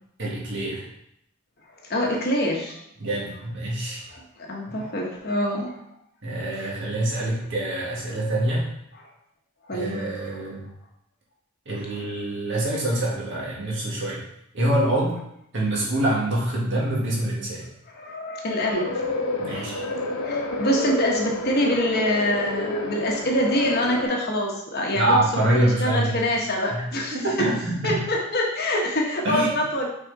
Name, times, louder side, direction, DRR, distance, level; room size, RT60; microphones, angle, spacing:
voice 1, 0.2-0.8 3.0-4.0 4.7-4.8 6.2-8.6 9.7-10.6 11.7-14.2 14.5-15.2 15.5-17.6 19.4-19.8 25.0-26.2 26.7-26.8 27.1-28.0 29.2-29.5, right 1 dB, 55° right, -5 dB, 1.9 m, -25 dB
voice 2, 1.8-2.8 4.1-5.7 6.6-6.7 9.7-10.1 11.9-12.0 17.9-19.2 19.5-19.8 20.2-27.2 27.8-29.9, left 1 dB, 45° left, -1 dB, 1.2 m, -25 dB
sound 1, 18.7-24.1, left 2 dB, 75° left, 1.1 m, -29 dB
6.1 x 4.1 x 4.1 m, 0.77 s
head